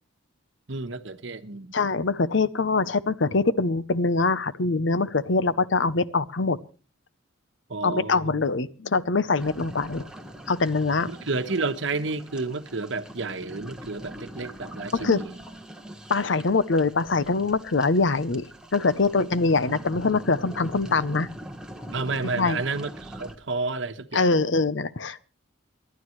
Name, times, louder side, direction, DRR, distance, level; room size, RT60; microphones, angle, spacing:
voice 1, 0.7-1.7 7.7-8.5 11.1-15.3 21.9-24.4, right 3 dB, 65° right, 1.1 m, -31 dB
voice 2, 1.7-6.6 7.8-10.0 10.5-11.1 14.9-15.2 16.1-18.5 18.7-21.3 22.4-22.6 24.1-25.2, left 3 dB, 65° left, 0.7 m, -23 dB
sound 1, 9.4-23.4, equal, 5° right, 1.3 m, -42 dB
28.5 x 11.5 x 3.2 m
head